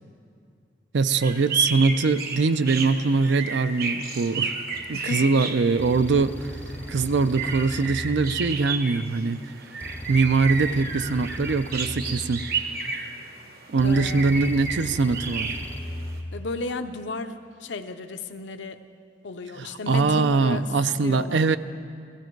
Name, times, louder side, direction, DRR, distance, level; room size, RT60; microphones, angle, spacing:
voice 1, 0.9-4.5 4.9-6.5 6.9-9.5 10.1-12.4 13.7-15.5 19.6-21.6, right 4 dB, 80° right, 13 dB, 0.5 m, -22 dB
sound 1, 1.2-16.2, right 5 dB, 55° right, 1.0 m, -32 dB
sound 2, 4.7-5.0 5.8-9.1 9.8-13.1 13.8-16.7, left 1 dB, 10° left, 0.4 m, -38 dB
voice 2, 4.9-5.3 13.8-14.4 16.3-18.8 19.2-20.7 21.0-21.5, left 3 dB, 80° left, 8 dB, 0.7 m, -34 dB
16.5 x 14.5 x 4.6 m, 2.3 s
head